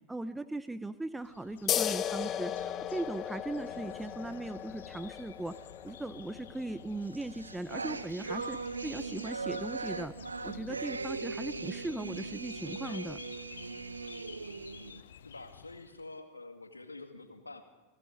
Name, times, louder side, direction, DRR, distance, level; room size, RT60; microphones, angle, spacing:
voice 1, 0.1-5.6 5.8-8.6 8.8-10.1 10.4-13.2, right 2 dB, 5° right, 13 dB, 0.6 m, -38 dB
sound 1, 1.2-16.1, left 9 dB, 60° left, 0.7 m, -52 dB
sound 2, 1.7-8.8, left 10 dB, 30° left, 0.7 m, -37 dB
sound 3, 7.1-15.0, right 3 dB, 80° right, 0.9 m, -39 dB
voice 2, 15.2-17.6, left 2 dB, 80° left, 8 dB, 2.0 m, -47 dB
28.0 x 19.0 x 5.1 m, 1.2 s
figure-of-eight pair, 90°, 0 cm